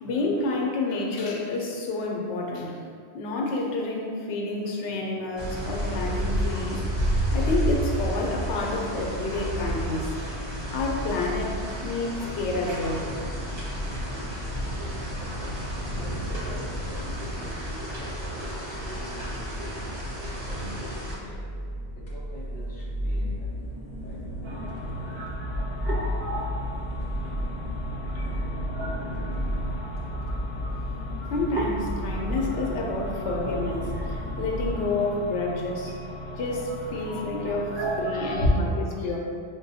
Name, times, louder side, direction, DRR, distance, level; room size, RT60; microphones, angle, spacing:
voice 1, 0.0-2.8 3.1-6.8 7.3-10.1 10.7-11.6 11.8-13.1 31.3-35.9 36.4-37.7 38.0-39.2, left 2 dB, 85° left, -1 dB, 0.9 m, -29 dB
sound 1, 5.4-21.2, equal, 70° right, 1.2 m, -31 dB
voice 2, 15.9-23.7 24.0-24.4 37.8-39.2, equal, 10° left, -7 dB, 0.5 m, -44 dB
sound 2, 16.0-34.7, equal, 50° left, 0.8 m, -34 dB
sound 3, 24.4-38.5, equal, 50° right, 0.6 m, -34 dB
5.4 x 2.2 x 2.7 m, 2.3 s
omnidirectional pair, 1.2 m